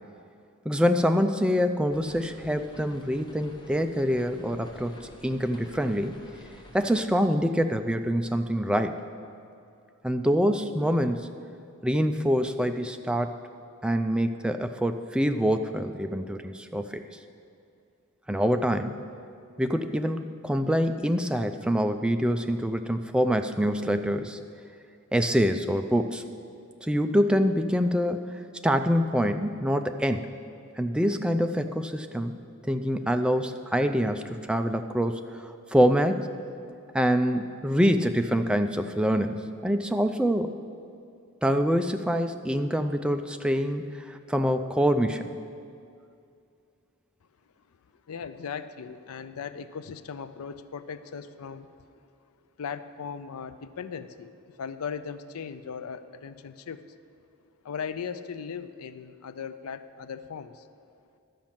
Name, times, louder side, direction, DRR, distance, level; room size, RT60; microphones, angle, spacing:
voice 1, 0.7-6.1 6.7-9.0 10.0-11.3 11.8-13.4 13.8-17.0 18.3-19.0 19.6-24.4 25.1-26.2 26.8-30.3 30.8-32.3 32.7-36.3 36.9-40.5 41.4-45.3, equal, 5° right, 7 dB, 0.3 m, -25 dB
sound 1, 1.9-6.9, left 1 dB, 20° left, 0.7 m, -50 dB
voice 2, 48.1-51.7 52.6-56.8 57.6-60.7, left 6 dB, 80° left, 13 dB, 0.4 m, -38 dB
12.0 x 5.2 x 7.3 m, 2.5 s
head